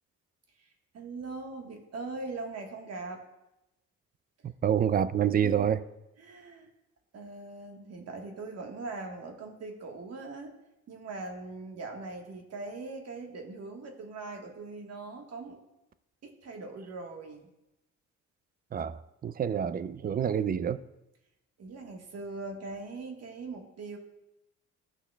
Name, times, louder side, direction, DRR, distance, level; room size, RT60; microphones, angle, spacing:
voice 1, 0.9-3.2 5.4-5.8 6.2-6.7 7.1-10.5 10.9-15.6 16.2-17.5 21.6-24.0, right 3 dB, 55° right, 1.4 m, -41 dB
voice 2, 4.4-5.8 18.7-20.8, right 8 dB, 30° right, 0.4 m, -28 dB
15.5 x 6.2 x 2.3 m
cardioid pair, 90°, 30 cm